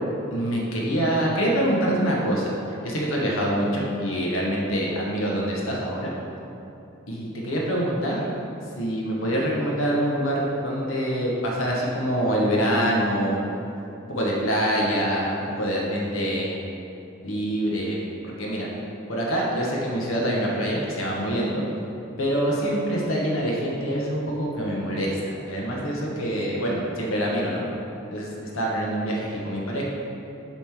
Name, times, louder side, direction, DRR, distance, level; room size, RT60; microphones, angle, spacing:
voice 1, 0.3-2.5 2.8-6.1 7.1-8.2 8.8-13.4 14.1-16.5 17.2-18.0 18.2-18.7 19.1-21.6 22.2-27.6 28.1-29.8, equal, 75° left, -3 dB, 1.1 m, -25 dB
6.9 x 3.2 x 5.8 m, 2.9 s
head